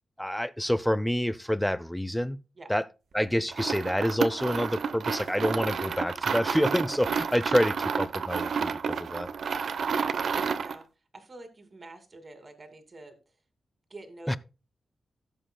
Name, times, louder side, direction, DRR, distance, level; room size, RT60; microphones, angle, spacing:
voice 1, 0.2-2.4 2.7-2.8 3.1-9.3 14.3-14.4, equal, 5° left, 0.5 m, -27 dB
sound 1, 3.5-10.8, right 6 dB, 65° right, 0.8 m, -30 dB
voice 2, 9.9-10.3 10.5-10.8 11.1-13.2 13.9-14.4, right 2 dB, 30° right, 2.3 m, -46 dB
16.0 x 7.7 x 2.2 m
wide cardioid pair, 135°, 0 cm